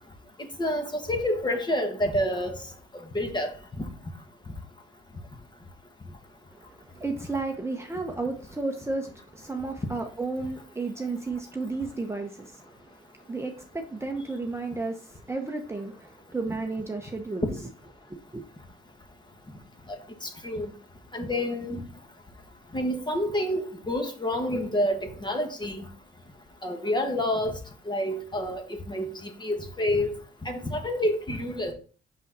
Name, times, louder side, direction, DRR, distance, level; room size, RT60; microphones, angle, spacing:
voice 1, 0.6-2.6 3.1-3.5 3.8-3.9 19.9-20.7 21.1-21.8 22.7-25.9 26.6-27.6 27.9-30.1 30.4-31.7, left 1 dB, 20° left, 1.5 m, -28 dB
voice 2, 6.5-17.6 18.1-18.4, right 3 dB, 15° right, 0.9 m, -33 dB
6.2 x 5.5 x 3.9 m
cardioid pair, 90°, 20 cm